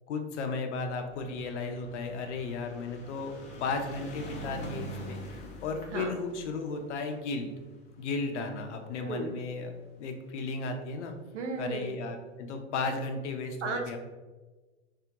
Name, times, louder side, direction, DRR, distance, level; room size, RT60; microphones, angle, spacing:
voice 1, 0.1-3.3 3.6-7.5 8.0-9.7 10.0-11.1 11.6-14.0, left 3 dB, 75° left, 5 dB, 0.6 m, -35 dB
sound 1, 1.1-9.5 10.4-10.5 10.7-10.8 11.0-11.1, equal, 20° left, 0.4 m, -45 dB
voice 2, 9.1-9.4 11.3-11.9 13.6-14.0, right 3 dB, 75° right, 3 dB, 0.7 m, -34 dB
3.4 x 2.3 x 2.8 m, 1.2 s
hypercardioid pair, 120°, 35 cm